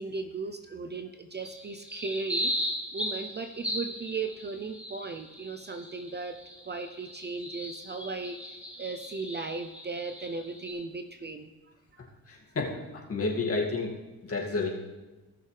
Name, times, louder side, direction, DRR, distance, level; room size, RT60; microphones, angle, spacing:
voice 1, 0.0-2.5 2.9-6.4 6.7-11.5 12.0-12.1, right 4 dB, 30° right, 7 dB, 0.6 m, -37 dB
sound 1, 1.4-10.7, equal, 5° right, 2.6 m, -37 dB
voice 2, 12.3-12.8 13.1-13.9 14.2-14.7, left 3 dB, 40° left, -2 dB, 2.3 m, -30 dB
17.5 x 6.4 x 3.4 m, 1.2 s
cardioid pair, 95°, 36 cm